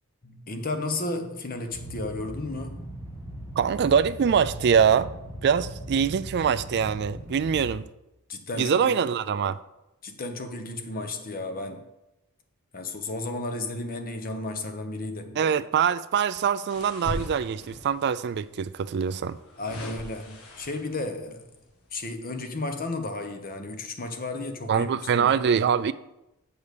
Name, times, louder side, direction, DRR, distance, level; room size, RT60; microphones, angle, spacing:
voice 1, 0.2-2.8 8.3-9.0 10.0-11.9 12.7-15.4 19.6-21.5 21.9-25.4, left 2 dB, 40° left, 0.9 m, -33 dB
sound 1, 1.7-7.7, right 1 dB, 10° right, 1.8 m, -39 dB
voice 2, 3.6-5.1 5.4-7.9 8.6-9.6 15.4-19.4 24.7-25.9, right 7 dB, 50° right, 0.3 m, -24 dB
sound 2, 16.7-18.0 19.0-21.1 21.6-21.8, left 1 dB, 75° left, 1.7 m, -39 dB
7.1 x 4.7 x 6.7 m
head